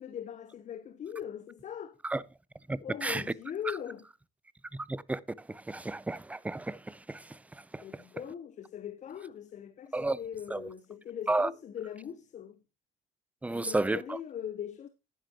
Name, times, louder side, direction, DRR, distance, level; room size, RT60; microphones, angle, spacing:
voice 1, 0.0-2.0 2.8-4.1 7.8-12.6 13.5-14.9, left 9 dB, 45° left, 0.8 m, -41 dB
voice 2, 2.7-3.2 4.9-5.2 5.7-6.8 7.1-7.2 7.7-7.8 9.9-10.2 10.5-10.6 11.3-11.5 13.4-14.0, right 2 dB, 10° right, 0.5 m, -31 dB
11.0 x 10.5 x 2.9 m
cardioid pair, 110°, 17 cm